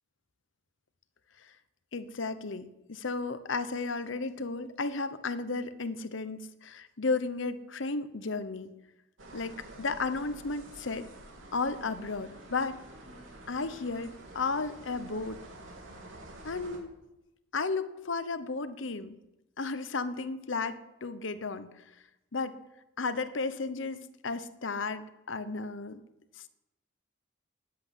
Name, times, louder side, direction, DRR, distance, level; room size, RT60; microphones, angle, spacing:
voice 1, 1.9-8.7 9.3-11.1 11.5-12.9 13.5-15.4 16.4-16.9 17.5-19.2 19.6-21.8 22.3-22.6 23.0-26.0 26.4-26.5, left 3 dB, 65° left, 12 dB, 0.9 m, -34 dB
sound 1, 9.2-16.8, right 2 dB, 75° right, 3.3 m, -49 dB
14.0 x 10.5 x 8.1 m, 0.93 s
head